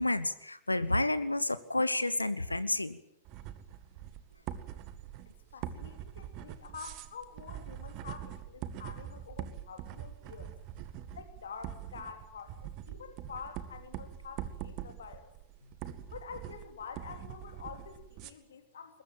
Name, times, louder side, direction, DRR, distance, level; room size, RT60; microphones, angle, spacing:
voice 1, 0.0-3.0, left 2 dB, 85° left, 16 dB, 0.9 m, -30 dB
sound 1, 3.3-18.3, right 11 dB, 40° right, 1.8 m, -44 dB
voice 2, 5.5-10.5 11.1-15.3 16.1-19.0, left 6 dB, 65° left, 7 dB, 3.0 m, -47 dB
21.5 x 21.0 x 9.0 m, 0.77 s
figure-of-eight pair, 90°, 0 cm